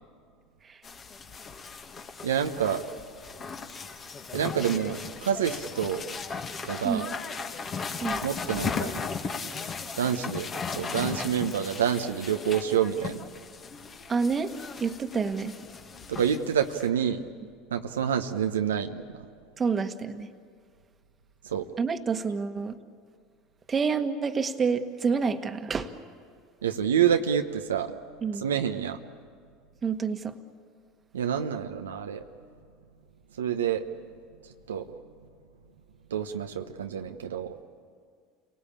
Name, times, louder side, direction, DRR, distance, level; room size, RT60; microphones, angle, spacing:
sound 1, 0.8-16.9, left 5 dB, 35° left, 1.9 m, -37 dB
voice 1, 2.2-2.8 4.3-6.0 6.6-7.1 8.2-8.9 10.0-10.5 10.8-13.2 16.1-17.3 17.7-19.0 21.4-21.7 26.6-27.9 28.4-29.0 31.1-32.2 33.4-33.9 34.7-34.9 36.1-37.5, right 8 dB, 90° right, 6 dB, 0.9 m, -27 dB
voice 2, 14.1-14.5 14.8-15.6 19.6-20.3 21.8-22.8 23.7-25.9 28.2-28.4 29.8-30.4, right 5 dB, 30° right, 8 dB, 1.5 m, -28 dB
28.5 x 18.5 x 8.7 m, 2.1 s
hypercardioid pair, 85°, 0 cm